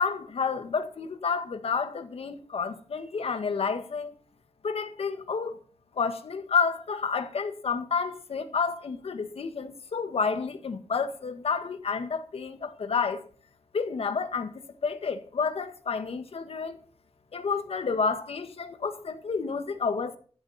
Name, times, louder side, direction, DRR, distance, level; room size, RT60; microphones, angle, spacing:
voice 1, 0.0-4.1 4.6-5.6 6.0-13.2 13.7-16.8 17.3-20.2, left 5 dB, 60° left, 1.9 m, -30 dB
15.0 x 12.0 x 4.4 m
wide cardioid pair, 175°, 11 cm